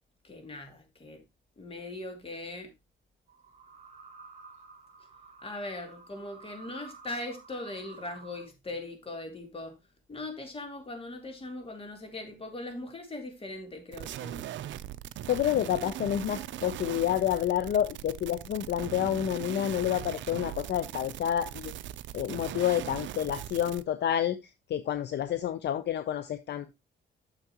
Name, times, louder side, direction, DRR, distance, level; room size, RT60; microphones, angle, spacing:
voice 1, 0.2-1.2 1.6-2.7 5.4-9.8 10.1-14.4, left 2 dB, 30° left, 2.5 m, -40 dB
sound 1, 3.3-8.5, right 4 dB, 35° right, 3.2 m, -51 dB
sound 2, 13.9-23.8, right 12 dB, 70° right, 0.5 m, -40 dB
voice 2, 15.3-21.7 22.1-24.4 24.7-26.7, left 10 dB, 60° left, 0.6 m, -29 dB
9.4 x 6.8 x 2.9 m
cardioid pair, 90°, 20 cm